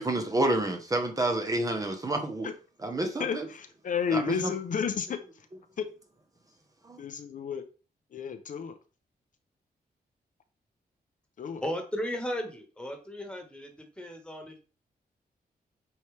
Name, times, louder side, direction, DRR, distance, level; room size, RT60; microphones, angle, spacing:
voice 1, 0.0-2.5 2.8-3.4 4.1-4.5 6.9-7.0, right 2 dB, 20° right, 5 dB, 1.0 m, -29 dB
voice 2, 3.2-5.2 5.8-5.9 7.0-7.6 8.1-8.8 11.4-11.6, left 6 dB, 55° left, 7 dB, 0.7 m, -31 dB
voice 3, 11.6-14.6, equal, 5° left, 3 dB, 1.6 m, -35 dB
8.6 x 4.6 x 3.4 m, 0.35 s
wide cardioid pair, 160°, 16 cm